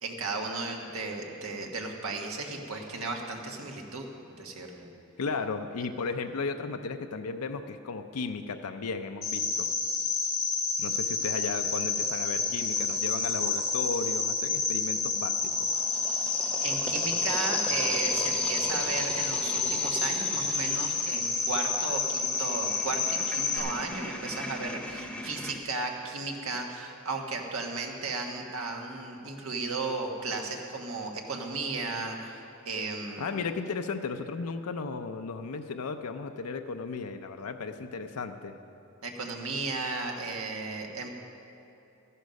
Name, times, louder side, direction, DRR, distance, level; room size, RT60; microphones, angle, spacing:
voice 1, 0.0-4.9 16.6-33.4 39.0-41.1, right 3 dB, 70° right, 2 dB, 1.4 m, -35 dB
voice 2, 5.2-9.7 10.8-15.7 33.2-38.6, left 4 dB, 85° left, 6 dB, 0.5 m, -35 dB
Cricket, 9.2-23.6, left 4 dB, 30° left, 2.5 m, -29 dB
sound 1, 11.9-14.3 15.2-25.6, left 1 dB, 5° left, 0.7 m, -38 dB
13.5 x 11.0 x 5.2 m, 2.7 s
head